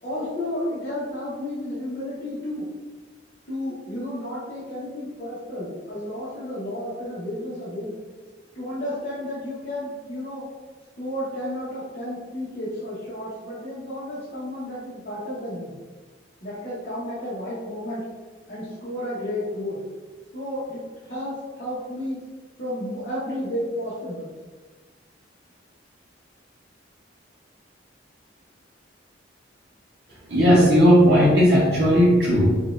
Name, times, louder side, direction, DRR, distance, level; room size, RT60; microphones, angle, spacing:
voice 1, 0.0-2.6 3.5-7.9 8.5-10.4 11.0-15.7 16.4-18.0 18.5-19.8 20.3-22.2 22.6-24.3, left 1 dB, 45° left, -10 dB, 0.9 m, -32 dB
voice 2, 30.3-32.6, equal, 60° right, -8 dB, 0.7 m, -16 dB
4.1 x 2.3 x 2.4 m, 1.3 s
head